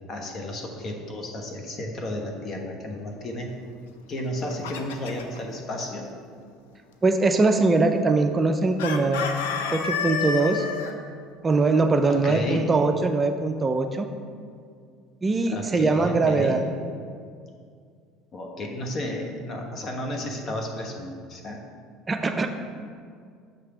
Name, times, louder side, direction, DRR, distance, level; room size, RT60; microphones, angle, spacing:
voice 1, 0.1-3.5 4.1-6.1 12.1-12.7 15.5-16.6 18.3-21.6, left 1 dB, 40° left, 2 dB, 1.1 m, -32 dB
Chicken rooster, 4.2-5.4 8.8-10.9, left 6 dB, 90° left, 0.5 m, -29 dB
voice 2, 7.0-9.2 9.7-10.7 11.4-14.1 15.2-16.6 22.1-22.5, right 3 dB, 25° right, 6 dB, 0.4 m, -22 dB
6.6 x 3.3 x 5.9 m, 2.2 s
supercardioid pair, 90°, 0 cm